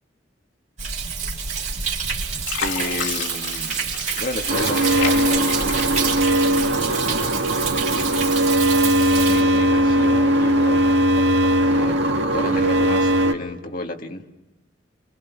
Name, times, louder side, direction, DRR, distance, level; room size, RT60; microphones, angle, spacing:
Thunder, 0.8-9.4, right 6 dB, 40° right, 4.2 m, -27 dB
Fill (with liquid), 1.7-2.1 2.4-6.8 7.3-8.1 8.6-8.8, left 5 dB, 85° left, 3.0 m, -32 dB
voice 1, 2.6-3.8 4.2-5.5 6.4-7.2 9.3-10.9 11.7-12.1 12.3-14.3, left 2 dB, 50° left, 1.8 m, -31 dB
sound 1, 4.5-13.3, right 1 dB, 70° right, 1.9 m, -19 dB
29.0 x 25.0 x 6.0 m
head